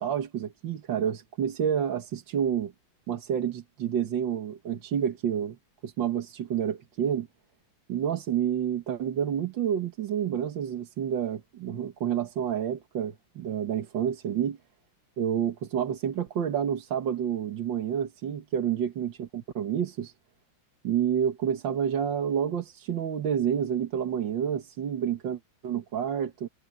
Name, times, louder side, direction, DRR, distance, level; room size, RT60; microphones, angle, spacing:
voice 1, 0.0-2.7 3.1-5.6 5.8-7.3 7.9-14.6 15.2-20.1 20.8-26.5, right 9 dB, 70° right, 2.0 m, -29 dB
omnidirectional pair, 2.2 m